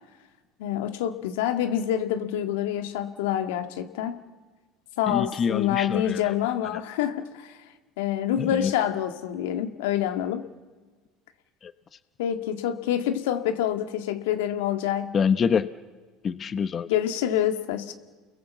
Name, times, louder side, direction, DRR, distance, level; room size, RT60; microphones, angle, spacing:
voice 1, 0.6-4.2 5.0-7.6 8.0-10.5 12.2-15.2 16.9-17.9, left 10 dB, 85° left, 1.8 m, -27 dB
voice 2, 5.1-6.2 8.4-8.7 11.6-11.7 15.1-15.7 16.2-16.9, left 6 dB, 35° left, 0.9 m, -25 dB
29.5 x 22.0 x 7.5 m
supercardioid pair, 95°, 0 cm